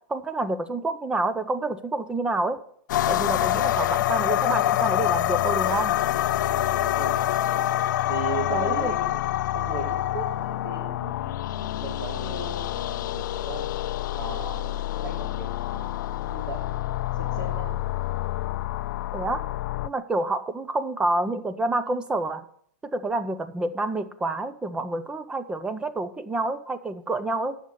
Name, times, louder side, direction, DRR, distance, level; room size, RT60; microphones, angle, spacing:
voice 1, 0.1-2.6 3.1-6.0 8.5-9.0 19.1-19.4 19.8-22.4 22.8-27.6, right 2 dB, 10° right, 11 dB, 0.5 m, -28 dB
sound 1, 2.9-19.9, left 14 dB, 70° left, 0.4 m, -26 dB
voice 2, 6.5-7.2 8.1-9.2 9.5-13.7 14.1-17.8, right 3 dB, 90° right, -7 dB, 3.5 m, -37 dB
9.6 x 6.4 x 6.8 m, 0.64 s
hypercardioid pair, 150°, 10 cm